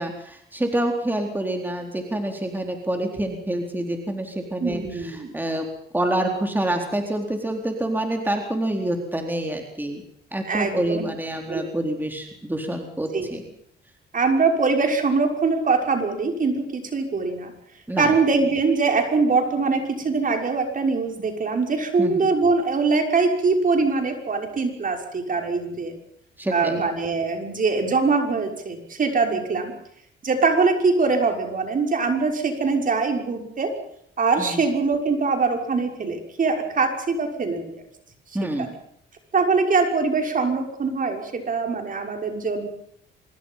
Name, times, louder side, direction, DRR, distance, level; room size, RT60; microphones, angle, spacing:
voice 1, 0.0-5.7 5.9-10.0 10.3-13.4 17.9-18.1 22.0-22.3 26.4-26.8 34.4-34.6 38.3-38.7, right 1 dB, 10° right, 3 dB, 4.1 m, -27 dB
voice 2, 4.6-5.3 10.5-11.0 11.5-11.6 13.1-13.3 14.1-17.5 18.0-25.9 26.5-29.7 30.2-33.7 34.2-37.8 38.6-38.7 39.3-42.7, right 4 dB, 45° right, 4 dB, 6.0 m, -23 dB
25.5 x 23.0 x 5.7 m, 0.69 s
cardioid pair, 90°, 20 cm